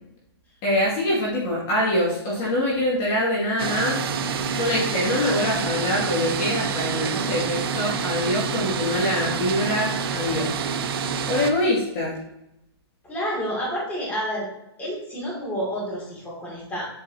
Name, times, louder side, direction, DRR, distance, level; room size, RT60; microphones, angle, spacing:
voice 1, 0.6-4.0 4.5-10.5 11.3-12.2, left 1 dB, 30° left, -5 dB, 2.1 m, -24 dB
sound 1, 3.6-11.5, right 6 dB, 60° right, 0.7 m, -27 dB
voice 2, 13.0-14.5 14.8-16.9, equal, 10° left, -5 dB, 2.5 m, -29 dB
8.0 x 5.2 x 2.8 m, 0.84 s
hypercardioid pair, 155°, 14 cm